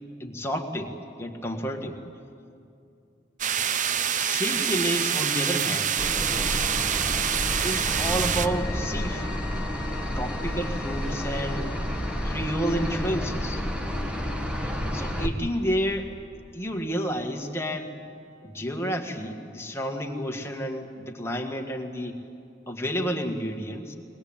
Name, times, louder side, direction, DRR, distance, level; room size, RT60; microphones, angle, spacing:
voice 1, 0.2-0.9 1.2-2.0 4.2-5.9 7.6-9.5 10.1-11.7 12.2-13.6 14.9-16.1 16.5-17.9 18.4-22.2 22.7-24.0, equal, 15° left, 2 dB, 1.8 m, -30 dB
sound 1, 3.4-8.5, right 8 dB, 45° right, 0.6 m, -26 dB
sound 2, 6.0-15.3, equal, 5° right, 1.5 m, -30 dB
sound 3, 7.2-13.3, left 5 dB, 75° left, 1.0 m, -43 dB
22.5 x 20.0 x 8.8 m, 2.6 s
head